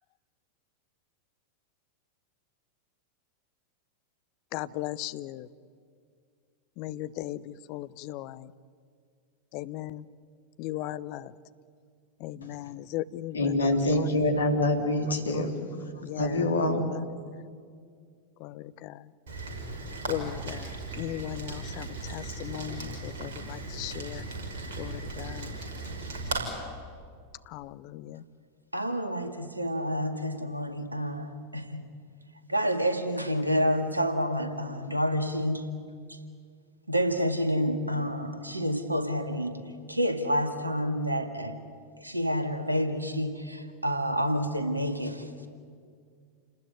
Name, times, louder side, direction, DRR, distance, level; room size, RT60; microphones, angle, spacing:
voice 1, 4.5-5.5 6.8-8.4 9.5-10.0 10.6-11.3 12.2-14.1 16.0-16.4 16.9-17.0 18.4-18.9 20.1-20.7 21.0-24.2 24.8-25.5 27.5-28.2, left 15 dB, 45° left, 0.8 m, -37 dB
voice 2, 13.3-15.5 16.2-16.9, left 1 dB, 75° left, 3.1 m, -25 dB
Rain, 19.3-26.4, right 3 dB, 60° right, 5.8 m, -37 dB
voice 3, 28.7-31.9 32.5-35.7 36.1-36.2 36.9-39.6 39.9-41.6 42.0-45.5, equal, 85° right, 2.2 m, -29 dB
29.0 x 19.5 x 10.0 m
figure-of-eight pair, 90°, 0 cm